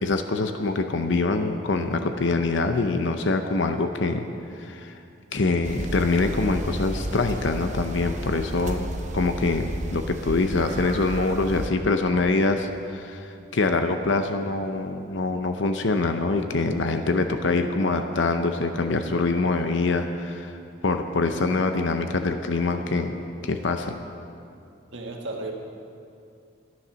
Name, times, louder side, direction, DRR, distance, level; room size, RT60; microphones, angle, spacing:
voice 1, 0.0-4.3 4.6-4.9 5.3-20.5 20.8-24.0, left 3 dB, 60° left, 7 dB, 0.7 m, -25 dB
voice 2, 1.8-2.1 24.9-25.5, right 2 dB, 65° right, 0 dB, 1.7 m, -34 dB
sound 1, 5.6-11.7, right 1 dB, 35° right, 0.8 m, -32 dB
12.5 x 10.5 x 6.3 m, 2.5 s
head